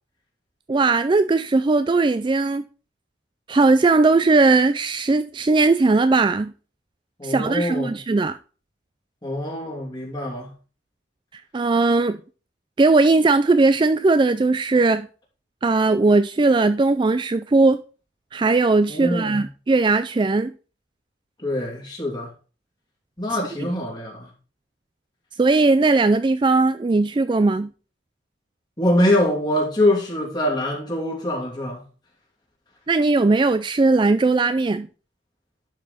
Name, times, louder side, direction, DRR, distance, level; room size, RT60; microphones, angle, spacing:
voice 1, 0.7-2.6 3.5-6.5 7.2-8.4 11.5-12.2 12.8-15.1 15.6-17.8 18.3-20.5 25.4-27.7 32.9-34.9, right 3 dB, 25° right, 0.3 m, -18 dB
voice 2, 7.2-7.9 9.2-10.5 18.9-19.4 21.4-22.3 23.2-24.3 28.8-31.8, left 1 dB, 25° left, 2.8 m, -24 dB
12.0 x 4.8 x 4.3 m
head